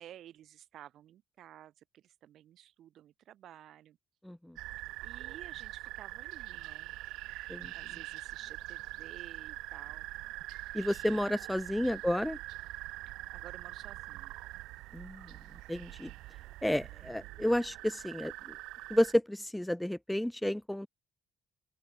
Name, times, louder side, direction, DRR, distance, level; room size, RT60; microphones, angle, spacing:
voice 1, 0.0-4.0 5.0-6.9 7.7-10.1 13.3-14.4 17.0-17.2, right 11 dB, 70° right, 6.3 m, -53 dB
voice 2, 4.2-4.6 7.5-7.7 10.7-12.4 14.9-15.3 15.7-16.1 16.6-18.6 18.9-20.9, left 1 dB, 5° left, 0.4 m, -31 dB
sound 1, 4.6-19.1, right 18 dB, 90° right, 2.0 m, -44 dB
open air
cardioid pair, 85°, 0 cm